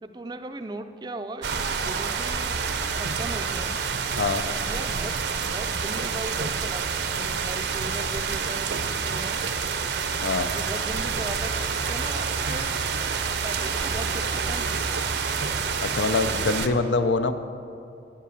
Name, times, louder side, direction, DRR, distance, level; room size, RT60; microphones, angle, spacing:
voice 1, 0.0-3.8 4.7-9.4 10.5-12.7 13.4-15.1, right 2 dB, 25° right, 8 dB, 0.4 m, -38 dB
sound 1, 1.4-16.7, right 5 dB, 70° right, 0.7 m, -28 dB
voice 2, 15.8-17.3, left 3 dB, 85° left, 10 dB, 0.6 m, -24 dB
9.9 x 7.5 x 7.0 m, 2.6 s
head